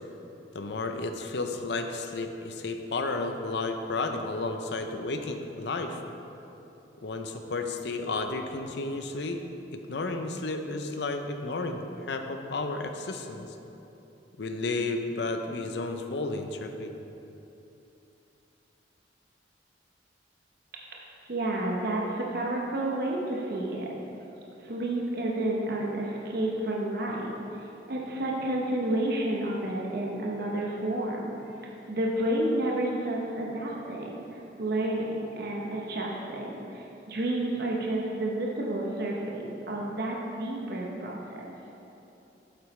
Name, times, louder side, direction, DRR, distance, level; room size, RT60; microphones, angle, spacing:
voice 1, 0.5-6.0 7.0-9.4 9.7-13.5 14.4-16.9, left 3 dB, 70° left, 6 dB, 0.6 m, -32 dB
voice 2, 21.3-23.9 24.6-31.6 31.9-41.5, right 1 dB, 55° right, -2 dB, 0.9 m, -30 dB
8.5 x 7.7 x 3.2 m, 3.0 s
head